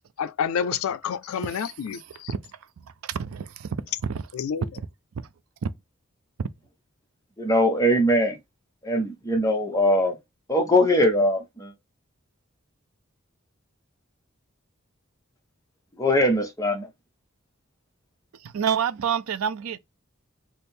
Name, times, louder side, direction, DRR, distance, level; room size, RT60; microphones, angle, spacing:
voice 1, 0.2-2.3 4.3-4.8, left 7 dB, 85° left, 0.4 m, -29 dB
voice 2, 3.0-4.2 5.6-5.7 18.4-19.8, right 7 dB, 85° right, 0.4 m, -28 dB
voice 3, 7.4-8.4 8.8-10.2 10.5-11.7 16.0-16.9, left 1 dB, 15° left, 0.6 m, -21 dB
3.4 x 2.0 x 4.2 m
head